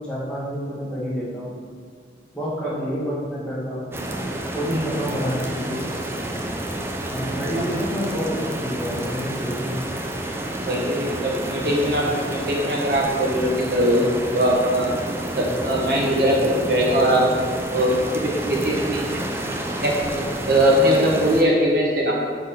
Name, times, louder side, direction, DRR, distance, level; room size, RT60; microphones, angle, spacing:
voice 1, 0.0-1.6 2.3-3.9 4.5-5.9 7.1-9.8, equal, 5° left, -8 dB, 1.5 m, -28 dB
sound 1, 3.9-21.4, right 1 dB, 15° right, 0.4 m, -29 dB
voice 2, 10.5-14.9 15.3-17.3 17.7-19.2 19.8-22.1, equal, 55° right, -2 dB, 1.0 m, -21 dB
5.2 x 4.1 x 5.7 m, 2.1 s
head